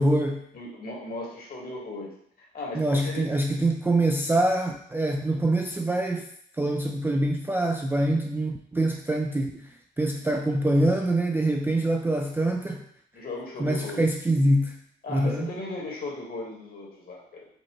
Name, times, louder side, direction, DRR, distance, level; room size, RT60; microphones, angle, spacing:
voice 1, 0.0-0.5 2.7-6.3 6.6-9.7 10.0-12.9 13.6-14.8 15.1-15.5, right 1 dB, 10° right, 1 dB, 0.3 m, -25 dB
voice 2, 0.5-2.1 2.4-3.2 13.1-14.0 15.0-17.5, left 2 dB, 50° left, -2 dB, 1.4 m, -37 dB
5.2 x 2.1 x 3.0 m, 0.68 s
cardioid pair, 90°, 20 cm